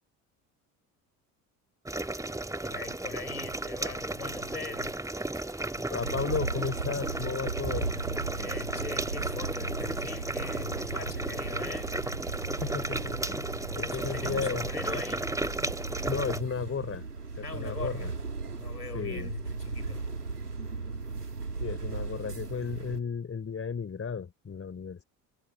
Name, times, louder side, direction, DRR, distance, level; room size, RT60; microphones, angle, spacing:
sound 1, 1.8-16.4, right 2 dB, 5° right, 1.8 m, -34 dB
voice 1, 2.7-5.0 8.2-12.0 13.8-15.4 17.4-18.2 18.5-20.1, left 4 dB, 90° left, 4.9 m, -41 dB
voice 2, 5.8-7.9 12.6-13.5 13.8-14.6 16.1-17.1 17.4-18.1 18.9-19.3 21.6-25.0, left 6 dB, 30° left, 4.9 m, -34 dB
sound 2, 6.0-23.0, right 4 dB, 90° right, 3.2 m, -37 dB
figure-of-eight pair, 55°, 46 cm